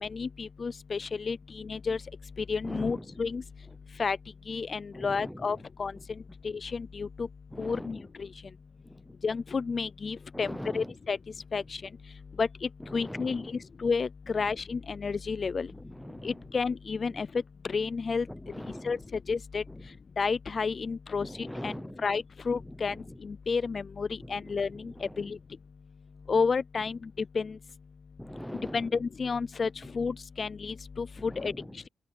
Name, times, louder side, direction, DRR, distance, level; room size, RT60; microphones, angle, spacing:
voice 1, 0.0-2.0 2.5-3.4 4.0-4.2 4.5-5.9 6.4-7.3 7.6-8.3 9.2-11.2 11.5-11.8 12.4-15.7 16.2-17.3 17.6-18.3 18.8-19.0 19.3-19.6 20.2-21.7 22.0-23.0 23.2-24.9 25.2-25.4 26.3-27.0 27.3-27.6 28.7-31.5, left 5 dB, 40° left, 0.3 m, -31 dB
voice 2, 2.6-3.3 3.7-3.8 4.9-5.6 6.0-6.1 7.5-8.1 8.8-9.1 10.3-11.0 11.6-11.7 12.8-13.6 14.4-14.5 15.7-16.5 17.1-17.2 18.3-19.1 19.7-20.0 21.2-22.0 22.6-23.2 24.2-25.3 28.2-28.9 29.8-29.9 31.2-31.9, equal, ahead, 0.7 m, -42 dB
open air
wide cardioid pair, 130°, 0 cm